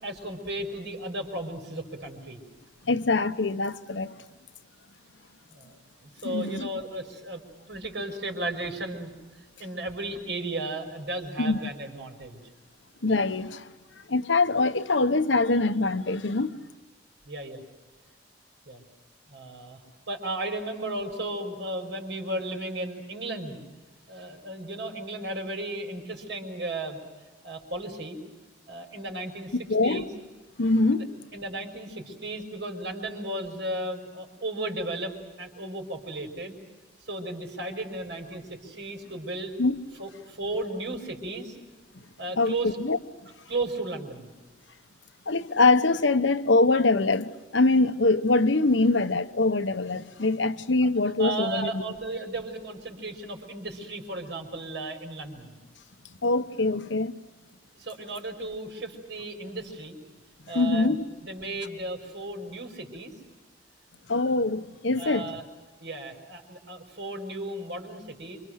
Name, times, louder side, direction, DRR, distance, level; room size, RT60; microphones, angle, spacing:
voice 1, 0.0-2.4 5.5-5.8 6.0-7.4 7.7-9.1 9.6-12.4 17.3-17.6 18.7-18.8 19.3-19.8 20.1-23.6 24.1-27.0 27.4-28.2 28.7-29.6 29.8-30.1 30.9-31.0 31.3-36.6 37.0-39.5 40.0-41.6 42.2-42.8 43.5-44.3 50.8-50.9 51.2-55.6 57.8-60.0 60.5-61.0 61.2-63.1 64.9-65.4 65.8-68.4, right 2 dB, 70° right, 5.5 m, -35 dB
voice 2, 2.8-4.1 6.2-6.7 11.4-11.6 13.0-13.7 14.1-16.6 29.7-30.1 30.6-31.1 39.6-39.8 42.4-43.0 45.3-51.8 56.2-57.2 60.5-61.0 64.1-65.3, left 3 dB, 80° left, 1.1 m, -23 dB
28.5 x 26.5 x 6.5 m
head